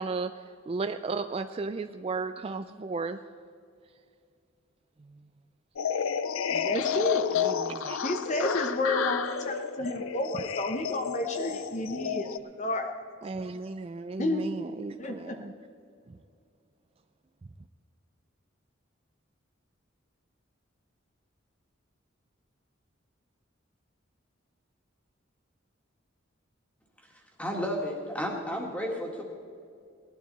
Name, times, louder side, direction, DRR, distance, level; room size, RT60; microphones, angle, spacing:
voice 1, 0.0-3.2 5.0-5.2 7.4-8.0 13.2-15.5 16.1-16.2, right 4 dB, 30° right, 9 dB, 0.3 m, -35 dB
sound 1, 5.8-12.4, left 8 dB, 85° left, 0.5 m, -31 dB
voice 2, 6.5-7.3 8.0-12.3 12.6-12.9 14.2-14.5 15.0-15.4, left 1 dB, 35° left, 4 dB, 0.8 m, -31 dB
voice 3, 27.4-29.2, equal, 5° left, 0 dB, 1.9 m, -32 dB
18.5 x 12.0 x 4.2 m, 2.4 s
head